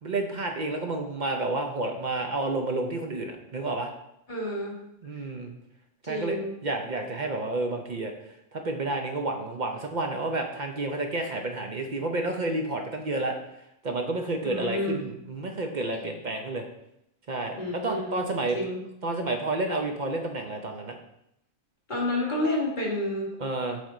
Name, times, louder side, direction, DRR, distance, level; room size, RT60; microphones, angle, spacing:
voice 1, 0.0-3.9 5.0-5.5 6.1-6.4 6.6-8.1 8.5-13.4 13.8-16.7 17.3-18.6 19.0-21.0 23.4-23.8, right 2 dB, 45° right, 3 dB, 0.6 m, -30 dB
voice 2, 4.3-4.8 6.0-6.5 14.4-15.0 17.6-18.2 18.5-18.8 21.9-23.3, left 1 dB, 35° left, -4 dB, 1.7 m, -29 dB
7.6 x 3.6 x 3.8 m, 0.79 s
omnidirectional pair, 1.4 m